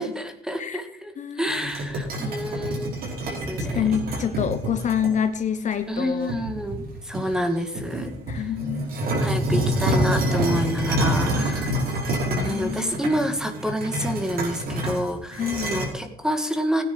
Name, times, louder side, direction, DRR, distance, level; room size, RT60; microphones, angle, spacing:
voice 1, 0.0-1.1 1.4-3.0 3.2-3.8 5.9-8.4 9.2-11.8 12.4-16.8, equal, 5° right, 7 dB, 1.8 m, -28 dB
voice 2, 1.2-1.7 3.5-6.3 8.3-8.9 12.2-13.0 15.3-15.8, left 8 dB, 45° left, 9 dB, 1.0 m, -27 dB
sound 1, 1.5-5.1 5.7-5.8 6.3-7.4 7.7-15.9, equal, 60° right, 5.3 m, -27 dB
16.0 x 9.9 x 4.8 m, 0.81 s
cardioid pair, 110°, 17 cm